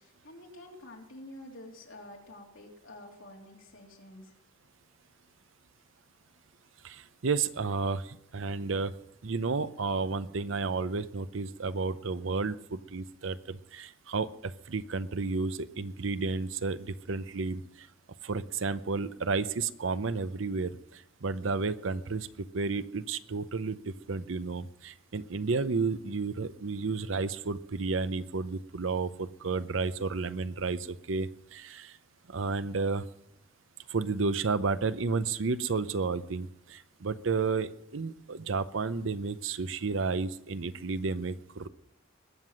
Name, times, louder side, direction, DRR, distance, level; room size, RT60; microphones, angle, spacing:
voice 1, 0.0-4.3, left 1 dB, 80° left, 0 dB, 3.2 m, -49 dB
voice 2, 6.8-8.9 9.2-17.9 18.2-32.0 32.3-33.1 33.9-41.7, right 4 dB, 75° right, 14 dB, 0.7 m, -32 dB
20.5 x 7.5 x 6.3 m, 0.82 s
head